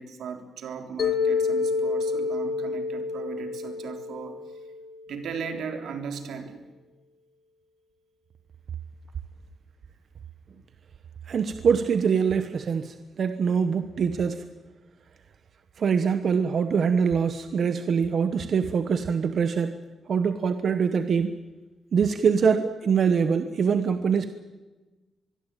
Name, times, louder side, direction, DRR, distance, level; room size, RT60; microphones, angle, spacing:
voice 1, 0.0-4.4 5.1-6.7, right 6 dB, 80° right, 6 dB, 3.6 m, -37 dB
Mallet percussion, 1.0-5.1, left 4 dB, 45° left, 1.7 m, -28 dB
voice 2, 11.3-14.4 15.8-19.8 20.1-21.4 21.9-24.3, right 6 dB, 50° right, 9 dB, 1.2 m, -24 dB
25.0 x 22.0 x 9.1 m, 1.2 s
wide cardioid pair, 165°, 0 cm